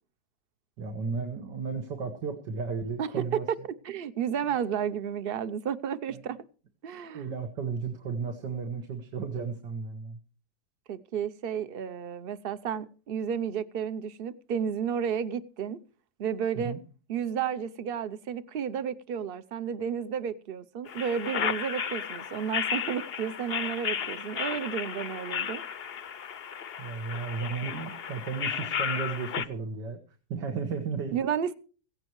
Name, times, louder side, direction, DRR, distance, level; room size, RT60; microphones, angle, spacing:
voice 1, 0.8-3.7 7.1-10.2 16.6-16.8 26.8-30.0 30.3-31.2, right 5 dB, 80° right, 2.1 m, -34 dB
voice 2, 3.0-3.6 3.8-6.4 6.8-7.2 10.9-15.8 16.2-16.7 17.1-25.6 31.1-31.5, right 8 dB, 55° right, 0.6 m, -32 dB
sound 1, 20.9-29.5, left 8 dB, 55° left, 0.7 m, -34 dB
16.5 x 16.0 x 3.1 m
omnidirectional pair, 1.9 m